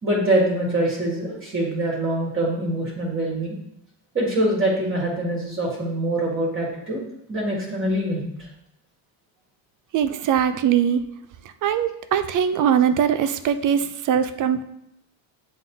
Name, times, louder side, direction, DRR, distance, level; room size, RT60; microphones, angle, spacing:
voice 1, 0.0-3.6 4.1-7.0 7.3-8.5, right 1 dB, 30° right, -4 dB, 1.7 m, -24 dB
voice 2, 9.9-11.1 11.6-14.6, right 8 dB, 45° right, 11 dB, 0.4 m, -21 dB
7.5 x 3.8 x 3.7 m, 0.80 s
cardioid pair, 120°, 44 cm